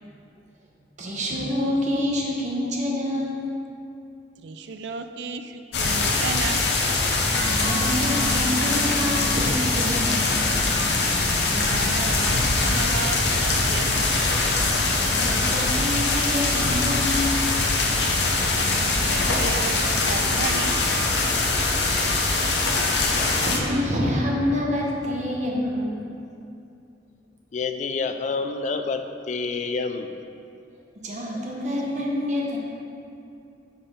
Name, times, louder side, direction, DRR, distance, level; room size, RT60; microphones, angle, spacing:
voice 1, 1.0-3.4 7.6-10.3 15.0-17.5 18.5-18.7 23.2-26.0 31.0-32.6, left 1 dB, 45° right, -2 dB, 0.9 m, -27 dB
voice 2, 4.4-6.6 11.5-14.2 18.8-20.8, right 5 dB, 70° right, 9 dB, 0.4 m, -34 dB
sound 1, 5.7-23.6, left 3 dB, 70° left, 0.7 m, -22 dB
sound 2, 7.3-15.4, right 1 dB, 10° left, 0.8 m, -38 dB
voice 3, 27.5-30.1, left 4 dB, 40° left, 7 dB, 0.3 m, -28 dB
5.5 x 4.2 x 5.1 m, 2.6 s
head